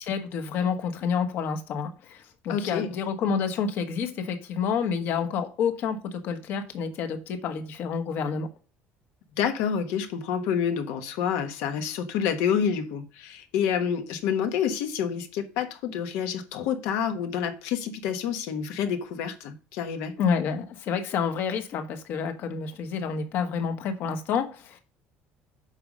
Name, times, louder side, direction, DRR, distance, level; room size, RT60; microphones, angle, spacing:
voice 1, 0.0-8.5 20.2-24.8, left 6 dB, 50° left, 1.3 m, -29 dB
voice 2, 2.5-2.9 9.4-20.1, left 8 dB, 75° left, 1.3 m, -28 dB
8.1 x 5.4 x 5.3 m
cardioid pair, 165°, 5 cm